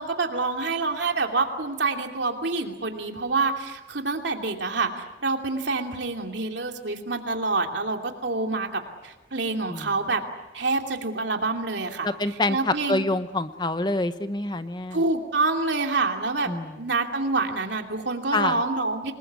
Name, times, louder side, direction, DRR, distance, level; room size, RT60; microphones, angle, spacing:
voice 1, 0.0-4.9 5.2-10.2 10.5-13.1 14.9-16.5 16.8-19.1, right 3 dB, 75° right, 3 dB, 2.8 m, -27 dB
voice 2, 12.0-15.0 16.5-16.7 18.3-18.6, left 2 dB, 25° left, 11 dB, 0.8 m, -26 dB
28.0 x 21.0 x 8.3 m, 1.0 s
head